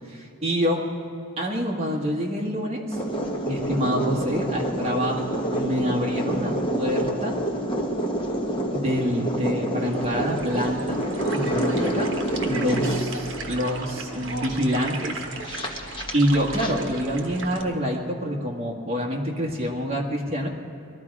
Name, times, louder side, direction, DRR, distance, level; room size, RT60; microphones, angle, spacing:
voice 1, 0.1-0.9 1.4-3.0 3.4-7.3 8.7-11.0 11.3-12.1 12.4-15.2 15.8-20.5, equal, 30° right, -2 dB, 1.8 m, -26 dB
sound 1, 2.9-16.7, right 1 dB, 25° left, 1.1 m, -28 dB
sound 2, 9.7-17.6, right 3 dB, 60° right, 1.3 m, -37 dB
21.0 x 12.5 x 4.9 m, 2.7 s
head